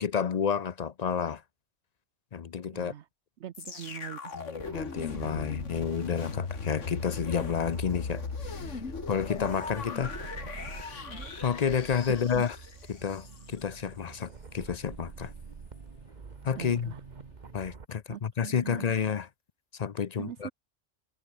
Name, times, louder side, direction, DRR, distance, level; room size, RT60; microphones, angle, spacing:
voice 1, 0.0-1.4 2.3-2.9 4.3-8.8 9.1-10.2 11.4-12.6 12.9-15.3 16.4-16.9 17.5-19.3 19.7-20.5, left 7 dB, 45° left, 0.6 m, -30 dB
voice 2, 2.7-3.0 3.4-4.2 12.1-12.4 16.6-17.0 18.1-18.9 20.2-20.5, right 11 dB, 70° right, 1.0 m, -41 dB
sound 1, 3.5-13.6 14.2-14.3, left 5 dB, 85° left, 2.4 m, -39 dB
sound 2, 4.6-17.9, right 5 dB, 40° right, 1.3 m, -46 dB
Subway metro underground, 5.1-17.7, left 2 dB, 70° left, 5.0 m, -61 dB
omnidirectional pair, 1.2 m